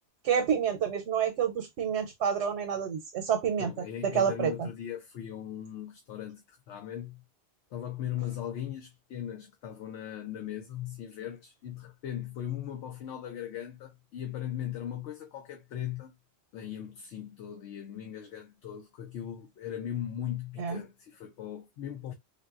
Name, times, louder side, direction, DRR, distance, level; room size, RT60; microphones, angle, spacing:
voice 1, 0.2-4.7 20.6-20.8, right 8 dB, 90° right, 0.9 m, -29 dB
voice 2, 3.6-7.2 7.7-16.1 16.5-22.1, left 10 dB, 85° left, 0.9 m, -38 dB
3.6 x 2.1 x 2.3 m
omnidirectional pair, 1.1 m